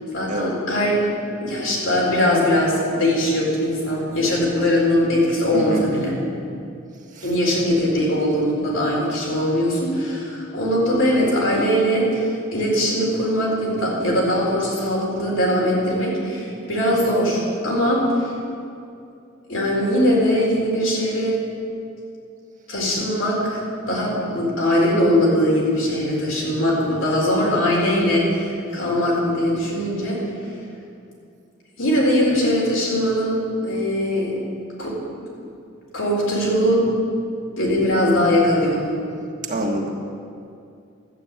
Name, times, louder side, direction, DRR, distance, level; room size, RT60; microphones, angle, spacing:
voice 1, 0.1-1.1 1.4-6.2 7.2-18.3 19.5-21.4 22.7-30.2 31.8-33.4 33.6-34.4 34.8-35.0 35.9-37.0 37.6-38.8, equal, 80° left, -4 dB, 4.3 m, -21 dB
voice 2, 5.5-5.9 7.1-7.3 39.5-40.0, right 1 dB, 40° right, 1 dB, 1.5 m, -26 dB
12.0 x 8.8 x 8.6 m, 2.5 s
head